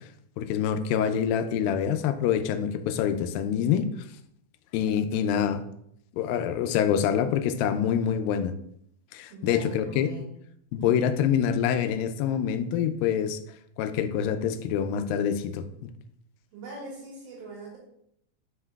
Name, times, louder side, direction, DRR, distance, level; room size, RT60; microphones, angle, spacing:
voice 1, 0.4-3.9 4.7-5.6 6.1-8.5 9.1-10.1 10.7-13.4 13.8-15.7, left 8 dB, 80° left, 9 dB, 2.2 m, -26 dB
voice 2, 9.3-10.3 10.8-11.0 16.5-17.8, right 3 dB, 75° right, -4 dB, 3.4 m, -42 dB
7.7 x 5.7 x 2.3 m, 0.72 s
omnidirectional pair, 4.2 m